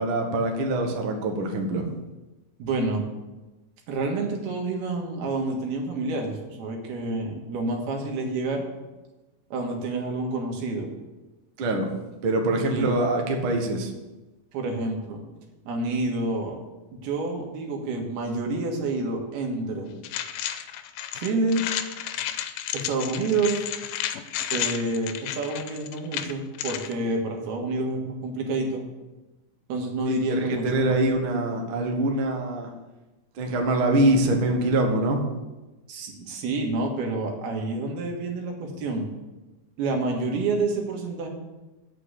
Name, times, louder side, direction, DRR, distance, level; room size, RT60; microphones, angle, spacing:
voice 1, 0.0-1.9 11.6-11.9 12.2-13.9 30.3-32.7 33.4-35.2, right 2 dB, 60° right, 2 dB, 1.4 m, -24 dB
voice 2, 2.6-3.1 3.9-8.6 9.5-10.9 12.7-13.0 14.5-15.2 15.7-16.6 16.9-19.9 21.1-21.6 22.7-23.7 24.5-28.8 29.7-30.9 35.9-39.1 39.8-41.3, right 3 dB, 85° right, 1 dB, 3.6 m, -28 dB
sound 1, 20.0-26.9, left 11 dB, 85° left, 2.5 m, -32 dB
8.6 x 6.8 x 8.3 m, 1.1 s
omnidirectional pair, 4.3 m